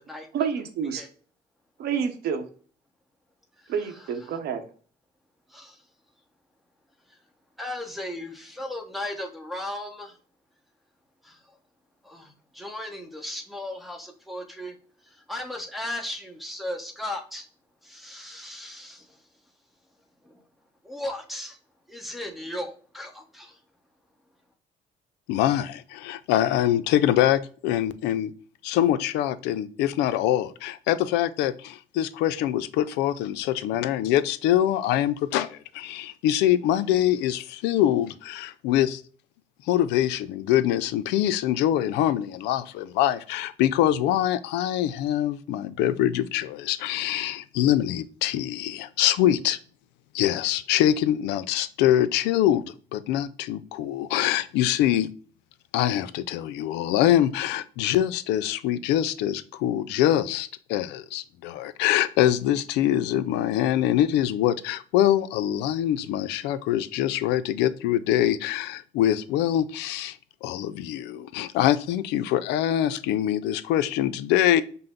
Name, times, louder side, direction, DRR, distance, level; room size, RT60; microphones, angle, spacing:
voice 1, 0.3-1.0 1.8-2.5 3.7-4.6, right 7 dB, 70° right, 0.8 m, -28 dB
voice 2, 5.5-5.9 7.1-7.2 7.6-10.2 11.2-11.6 12.0-17.5 17.8-19.3 20.2-20.4 20.8-21.6 21.9-23.6, left 1 dB, ahead, 0.8 m, -36 dB
voice 3, 25.3-28.3 28.6-39.0 39.7-49.6 50.1-52.6 52.9-55.1 55.7-74.6, left 12 dB, 90° left, 0.4 m, -24 dB
5.6 x 2.0 x 3.6 m
cardioid pair, 110°, 17 cm